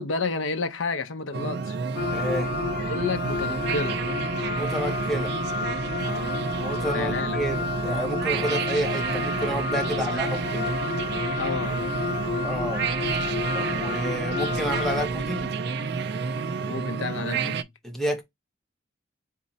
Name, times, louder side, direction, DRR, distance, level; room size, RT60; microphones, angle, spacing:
voice 1, 0.0-1.8 2.8-4.0 6.0-6.5 6.9-7.4 9.8-10.3 11.4-11.9 16.7-17.7, left 3 dB, 85° left, 0.8 m, -31 dB
sound 1, 1.3-17.6, right 5 dB, 60° right, 0.4 m, -30 dB
sound 2, 1.9-15.1, left 5 dB, 50° left, 0.7 m, -31 dB
sound 3, 2.0-15.5, right 1 dB, 35° left, 2.2 m, -45 dB
voice 2, 2.1-2.5 4.6-5.3 6.6-10.7 12.4-12.8 13.5-15.5 17.8-18.2, right 1 dB, ahead, 1.0 m, -30 dB
3.8 x 2.8 x 4.1 m
head